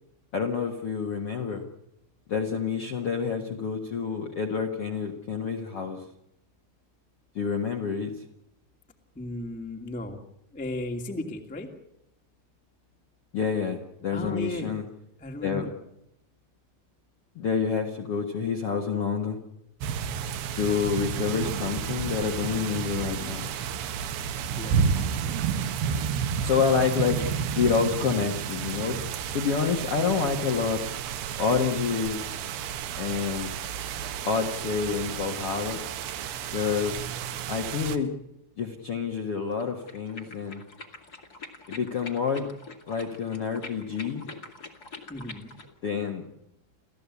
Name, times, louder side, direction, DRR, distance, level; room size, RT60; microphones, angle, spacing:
voice 1, 0.3-1.6 2.3-6.0 7.3-8.1 13.3-14.8 15.4-15.7 17.3-19.4 20.5-23.5 26.4-27.3 27.5-29.0 29.3-30.8 31.4-32.3 33.0-33.6 34.2-35.8 36.5-37.1 37.5-38.1 38.6-40.6 41.7-42.5 42.9-44.2 45.8-46.3, left 6 dB, 60° left, 2 dB, 1.6 m, -28 dB
voice 2, 9.1-10.2 10.5-11.7 14.1-14.8 15.2-15.8 24.5-24.8 45.1-45.5, left 1 dB, 5° left, 2 dB, 1.0 m, -35 dB
sound 1, 19.8-38.0, right 7 dB, 70° right, 3.0 m, -31 dB
sound 2, 39.5-45.7, left 3 dB, 35° left, 1.6 m, -44 dB
29.5 x 14.0 x 8.4 m, 0.81 s
omnidirectional pair, 5.0 m